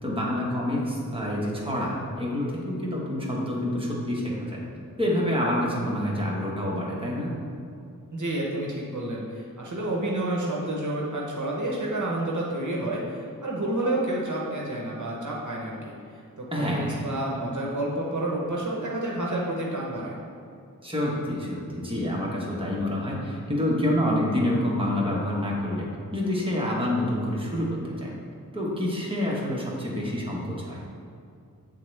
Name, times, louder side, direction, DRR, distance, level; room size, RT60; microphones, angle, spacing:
voice 1, 0.0-4.6 5.0-7.3 16.5-17.3 20.8-28.1 28.5-30.8, left 1 dB, 15° right, -4 dB, 1.2 m, -27 dB
voice 2, 8.1-20.2, right 1 dB, 60° right, -3 dB, 0.9 m, -30 dB
8.3 x 3.6 x 3.3 m, 2.4 s
wide cardioid pair, 70°, 33 cm